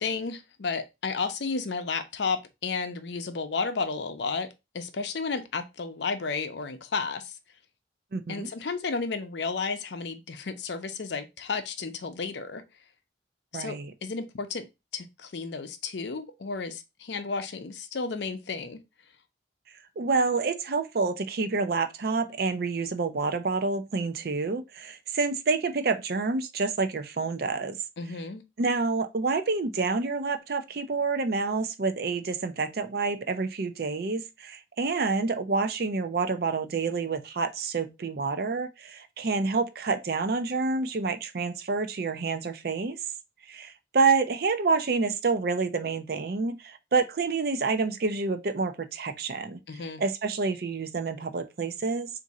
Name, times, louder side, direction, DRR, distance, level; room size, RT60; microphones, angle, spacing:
voice 1, 0.0-4.5 4.7-7.3 8.3-12.6 13.5-14.7 14.9-18.8 28.0-28.4 49.7-50.0, left 4 dB, 70° left, 0.6 m, -32 dB
voice 2, 8.1-8.5 13.5-13.9 20.0-27.8 28.6-43.0 43.5-52.1, right 4 dB, 55° right, 0.5 m, -28 dB
3.7 x 2.6 x 4.0 m
head